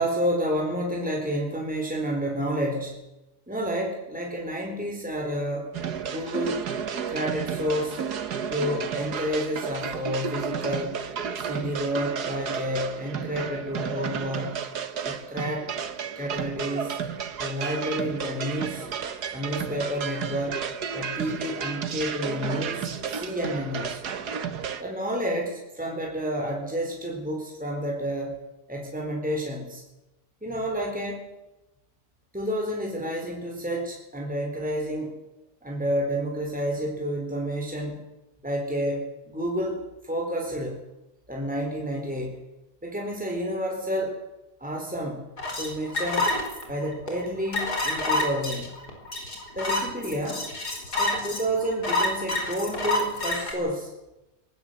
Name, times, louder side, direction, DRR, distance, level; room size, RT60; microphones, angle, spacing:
voice 1, 0.0-3.0 3.5-5.7 6.0-6.6 7.1-8.0 8.5-11.0 11.4-14.6 15.0-15.7 16.2-17.0 17.4-18.9 19.3-20.7 20.9-24.1 24.8-28.4 28.7-29.8 30.4-31.3 32.3-35.2 35.6-38.0 38.4-40.8 41.3-42.4 42.8-44.2 44.6-45.3 45.6-46.3 46.7-48.7 49.5-50.5 51.0-53.9, equal, 5° right, 0 dB, 4.1 m, -30 dB
sound 1, 5.7-24.8, right 7 dB, 80° right, 1.9 m, -32 dB
sound 2, 45.4-53.5, left 2 dB, 80° left, 5.4 m, -28 dB
20.0 x 20.0 x 8.0 m, 0.96 s
omnidirectional pair, 1.7 m